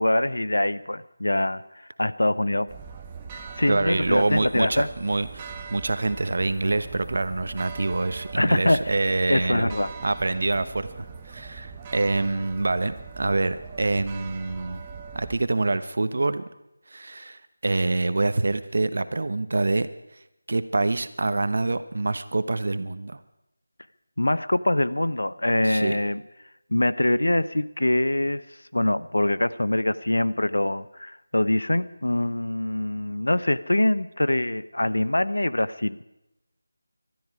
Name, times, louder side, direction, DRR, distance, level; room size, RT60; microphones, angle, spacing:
voice 1, 0.0-1.6 2.0-2.7 3.6-4.9 8.3-8.9 9.3-9.9 24.2-26.2 26.7-28.5 28.7-36.0, left 1 dB, 85° left, 15 dB, 0.8 m, -24 dB
sound 1, 2.7-15.4, right 5 dB, 15° right, 1.0 m, -41 dB
voice 2, 3.7-9.7 10.0-14.8 15.1-16.5 16.9-19.9 20.5-23.2 25.6-26.0, right 2 dB, 55° right, 12 dB, 1.0 m, -26 dB
20.5 x 12.5 x 4.9 m, 0.88 s
figure-of-eight pair, 170°, 0 cm